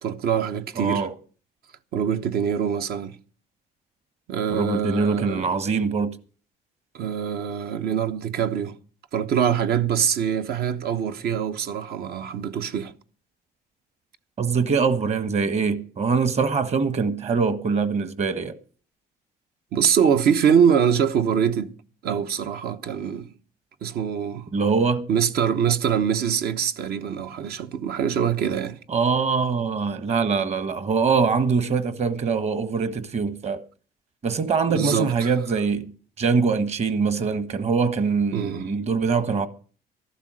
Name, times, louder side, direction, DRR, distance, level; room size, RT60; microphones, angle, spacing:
voice 1, 0.0-1.1 1.9-3.2 4.3-5.5 6.9-8.7 9.1-12.9 19.7-21.7 22.0-23.3 23.8-24.5 25.1-28.8 34.7-35.3 38.3-38.7, right 8 dB, 65° right, 1.1 m, -24 dB
voice 2, 0.8-1.1 4.5-6.2 14.4-18.6 24.5-25.1 28.9-33.6 34.2-35.9 36.2-39.5, right 5 dB, 40° right, 1.4 m, -23 dB
13.5 x 12.0 x 6.4 m
cardioid pair, 110°, 17 cm